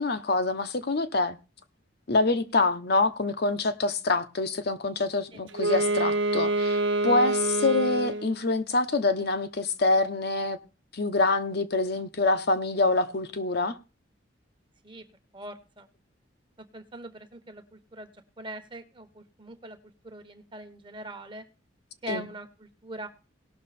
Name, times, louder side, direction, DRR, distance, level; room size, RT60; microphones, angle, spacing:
voice 1, 0.0-1.4 2.1-10.6 10.9-13.8 22.1-22.3, left 3 dB, 55° left, 0.8 m, -26 dB
Wind instrument woodwind instrument, 5.5-8.4, right 2 dB, 80° right, 1.1 m, -26 dB
voice 2, 15.3-15.9 16.6-18.1 18.4-19.8 20.0-21.4 22.0-23.1, right 1 dB, 25° right, 1.1 m, -42 dB
18.0 x 6.1 x 4.2 m
head